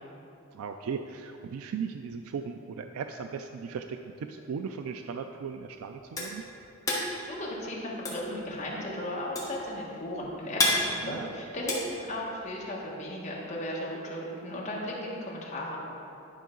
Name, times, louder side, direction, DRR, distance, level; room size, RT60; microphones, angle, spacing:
voice 1, 0.5-6.4 11.0-11.3, right 6 dB, 85° right, 6 dB, 0.3 m, -37 dB
sound 1, 5.5-12.7, left 2 dB, 15° left, 1.0 m, -31 dB
voice 2, 7.2-15.8, left 1 dB, 30° left, -4 dB, 1.3 m, -36 dB
10.5 x 5.4 x 3.8 m, 2.9 s
head